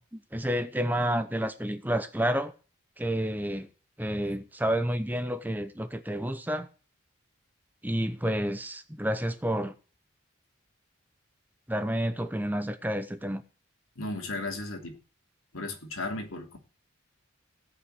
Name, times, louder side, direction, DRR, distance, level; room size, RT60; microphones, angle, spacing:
voice 1, 0.0-2.5 3.0-3.7 4.0-6.7 7.8-9.7 11.7-13.4, equal, 10° right, 0.8 m, -30 dB
voice 2, 14.0-15.0 15.5-16.6, left 2 dB, 85° left, 3.0 m, -35 dB
17.5 x 5.8 x 8.1 m
head